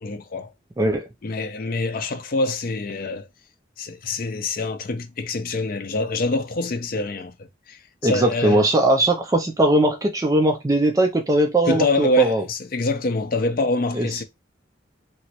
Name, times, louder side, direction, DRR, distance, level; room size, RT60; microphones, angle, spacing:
voice 1, 0.0-0.5 1.2-3.3 3.8-7.3 7.7-8.6 11.7-14.2, left 2 dB, 50° left, 0.5 m, -25 dB
voice 2, 0.8-1.1 8.0-12.4 13.9-14.2, right 1 dB, 20° right, 0.3 m, -20 dB
3.0 x 2.6 x 2.9 m
head